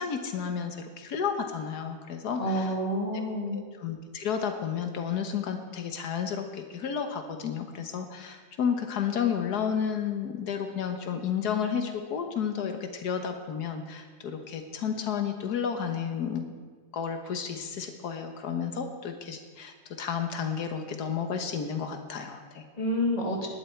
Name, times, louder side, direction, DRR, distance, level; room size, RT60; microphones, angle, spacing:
voice 1, 0.0-2.7 3.1-16.4 16.9-22.7, left 7 dB, 90° left, 6 dB, 1.7 m, -32 dB
voice 2, 2.4-3.6 22.8-23.5, equal, 25° left, -1 dB, 2.6 m, -28 dB
19.5 x 11.0 x 4.5 m, 1.5 s
omnidirectional pair, 1.6 m